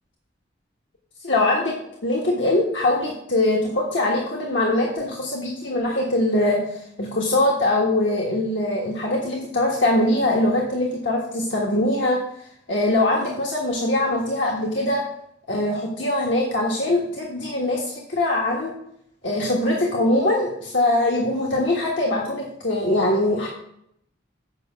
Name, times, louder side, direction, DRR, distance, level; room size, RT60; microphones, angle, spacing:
voice 1, 1.2-1.7 2.0-12.2 12.7-15.0 15.5-18.7 19.2-23.5, left 1 dB, 90° left, -2 dB, 1.5 m, -22 dB
8.2 x 5.6 x 6.4 m, 0.73 s
head